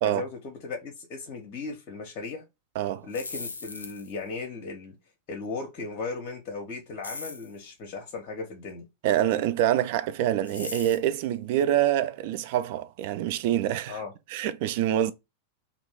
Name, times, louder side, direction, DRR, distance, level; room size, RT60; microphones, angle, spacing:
voice 1, 0.0-2.4 3.0-5.0 5.3-8.8 13.9-14.1, left 4 dB, 40° left, 0.7 m, -36 dB
voice 2, 2.8-3.1 9.0-14.0 14.3-15.1, right 12 dB, 50° right, 0.3 m, -26 dB
sound 1, 3.0-4.2 7.0-7.6 10.4-11.1, left 3 dB, 75° left, 0.4 m, -39 dB
2.6 x 2.4 x 3.3 m
figure-of-eight pair, 90°, 0 cm